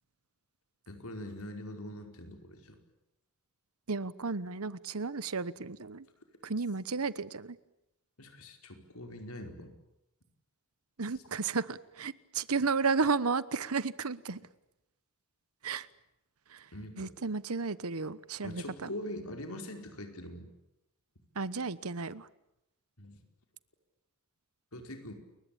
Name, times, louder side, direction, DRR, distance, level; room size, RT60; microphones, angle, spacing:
voice 1, 0.9-2.8 8.2-9.8 16.7-17.1 18.4-20.5 23.0-23.2 24.7-25.1, left 1 dB, 85° left, 5 dB, 5.0 m, -43 dB
voice 2, 3.9-6.1 6.4-7.6 11.0-14.5 15.6-15.9 16.5-16.7 17.0-18.9 21.3-22.3, right 4 dB, 90° right, 17 dB, 1.1 m, -33 dB
29.5 x 22.5 x 8.8 m, 0.87 s
head